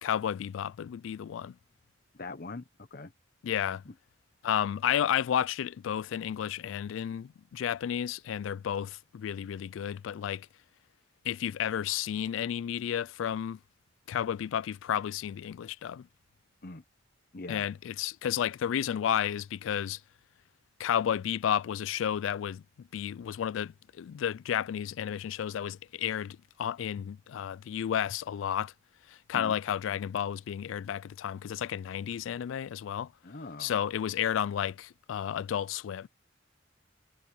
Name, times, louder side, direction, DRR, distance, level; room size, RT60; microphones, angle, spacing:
voice 1, 0.0-1.6 3.4-3.8 4.4-10.5 11.2-13.6 14.1-16.1 17.5-20.0 20.8-28.7 29.1-33.1 33.6-36.1, left 9 dB, 85° left, 0.3 m, -32 dB
voice 2, 2.1-2.6 2.9-3.1 16.6-16.8 17.3-17.7 29.3-29.5 33.2-33.7, left 3 dB, 50° left, 0.9 m, -42 dB
head